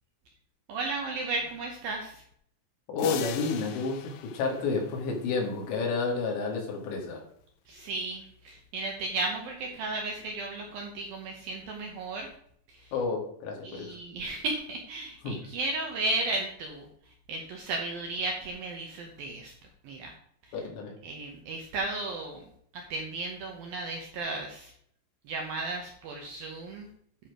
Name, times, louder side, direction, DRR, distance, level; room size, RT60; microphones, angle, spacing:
voice 1, 0.7-2.2 7.7-12.3 12.7-12.9 13.6-19.5 19.8-20.1 20.4-20.5 21.0-22.4 22.7-24.7 25.3-26.9, right 2 dB, 70° right, 2 dB, 2.3 m, -34 dB
voice 2, 2.9-7.2 12.9-14.0 15.2-15.4 20.5-21.0, left 4 dB, 70° left, 0 dB, 4.2 m, -30 dB
sound 1, 3.0-5.5, left 11 dB, 85° left, 2.3 m, -40 dB
10.5 x 7.2 x 5.0 m, 0.67 s
omnidirectional pair, 5.5 m